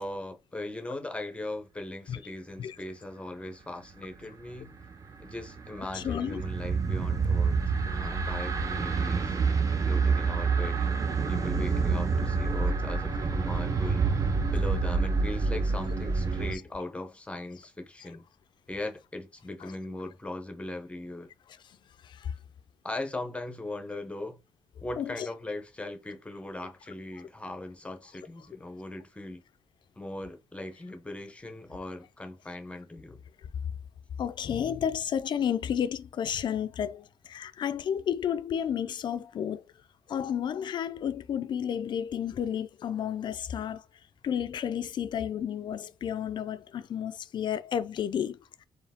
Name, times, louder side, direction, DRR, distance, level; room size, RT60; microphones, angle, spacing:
voice 1, 0.0-4.7 5.2-7.6 7.9-10.9 11.3-14.1 14.5-18.2 18.7-21.3 22.8-24.4 24.8-29.4 30.0-33.2, left 2 dB, 10° left, 0.7 m, -39 dB
sound 1, 4.8-16.6, right 4 dB, 35° right, 0.7 m, -28 dB
voice 2, 5.9-6.4 9.7-9.8 16.5-16.6 19.6-19.7 22.0-22.3 25.0-25.3 34.2-39.6 40.1-43.8 44.2-48.7, left 9 dB, 50° left, 0.4 m, -32 dB
4.5 x 3.1 x 3.5 m
wide cardioid pair, 165°, 10 cm